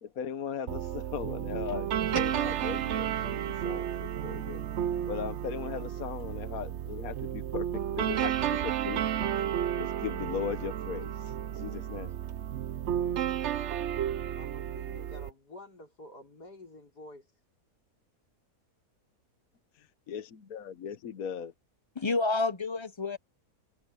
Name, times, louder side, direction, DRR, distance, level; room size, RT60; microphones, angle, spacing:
voice 1, 0.0-4.6 5.1-9.0 9.8-12.1 20.1-21.5, left 7 dB, 65° left, 1.4 m, -38 dB
sound 1, 0.7-15.3, right 10 dB, 60° right, 0.8 m, -32 dB
sound 2, 2.0-6.6, right 3 dB, 90° right, 5.2 m, -46 dB
voice 2, 14.4-17.3, left 2 dB, 90° left, 5.5 m, -49 dB
voice 3, 21.9-23.2, left 3 dB, 25° left, 0.6 m, -29 dB
omnidirectional pair, 1.7 m